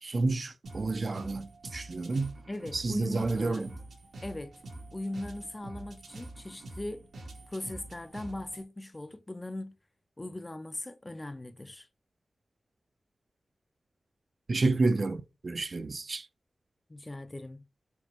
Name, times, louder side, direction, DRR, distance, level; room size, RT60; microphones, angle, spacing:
voice 1, 0.0-2.3 2.7-3.7 14.5-16.3, right 3 dB, 50° right, 0.4 m, -30 dB
sound 1, 0.6-8.6, right 2 dB, 80° right, 0.9 m, -46 dB
voice 2, 2.5-3.7 4.2-4.5 4.9-7.1 7.5-9.8 10.2-11.9 16.9-17.6, left 1 dB, 20° left, 0.4 m, -39 dB
4.3 x 2.0 x 2.8 m
wide cardioid pair, 85°, 0 cm